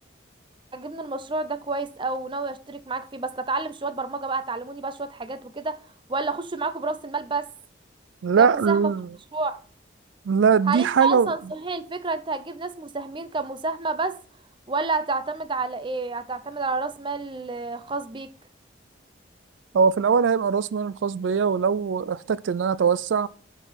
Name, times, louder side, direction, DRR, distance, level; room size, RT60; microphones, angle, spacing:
voice 1, 0.7-5.8 6.1-7.5 8.4-8.9 9.3-9.6 10.7-14.2 14.7-18.3, right 3 dB, 25° right, 0.6 m, -29 dB
voice 2, 8.2-9.1 10.3-11.3 19.7-23.3, right 6 dB, 80° right, 0.4 m, -21 dB
9.9 x 4.7 x 5.7 m
head